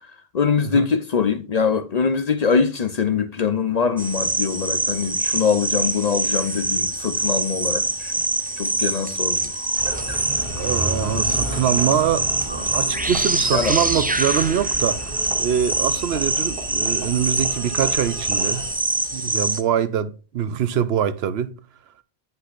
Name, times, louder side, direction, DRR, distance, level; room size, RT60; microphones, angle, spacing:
voice 1, 0.3-8.1 8.6-9.5 13.5-13.8, left 6 dB, 50° left, 0.6 m, -23 dB
sound 1, 4.0-19.6, right 2 dB, 15° right, 0.3 m, -24 dB
Engine, 9.8-18.7, right 1 dB, 60° right, 2.1 m, -32 dB
voice 2, 10.5-15.1 15.4-18.7 19.1-21.5, right 9 dB, 80° right, 0.9 m, -24 dB
9.9 x 5.7 x 2.5 m
omnidirectional pair, 1.1 m